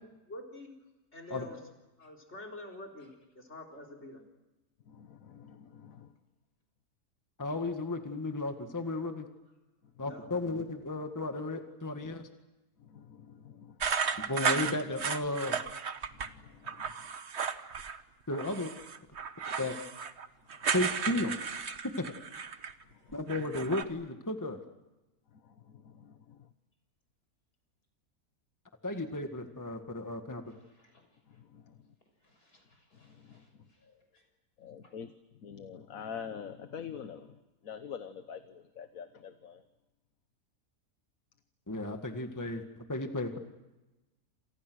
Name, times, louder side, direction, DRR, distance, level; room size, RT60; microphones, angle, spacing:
voice 1, 0.3-0.8 1.1-1.6 2.0-4.2 10.0-10.3, left 1 dB, 45° left, 1 dB, 4.5 m, -46 dB
voice 2, 4.9-6.1 12.8-13.8 16.1-17.1 22.9-23.0 25.3-26.5 31.3-31.8 33.0-33.4 34.6-35.1 35.4-39.6, left 7 dB, 65° left, 9 dB, 1.5 m, -46 dB
voice 3, 7.4-9.3 10.0-12.3 14.3-15.6 18.3-18.7 19.6-19.8 20.7-21.3 22.0-22.1 23.1-24.6 28.8-30.4 41.7-42.6 42.9-43.4, left 2 dB, 10° left, 5 dB, 1.9 m, -34 dB
sound 1, 13.8-16.3 16.7-18.0 18.3-22.8 23.1-23.8, right 6 dB, 50° right, 1.4 m, -34 dB
voice 4, 30.6-31.1 32.2-34.2, left 2 dB, 85° left, 4 dB, 7.1 m, -67 dB
28.5 x 28.0 x 6.4 m, 1.0 s
omnidirectional pair, 1.6 m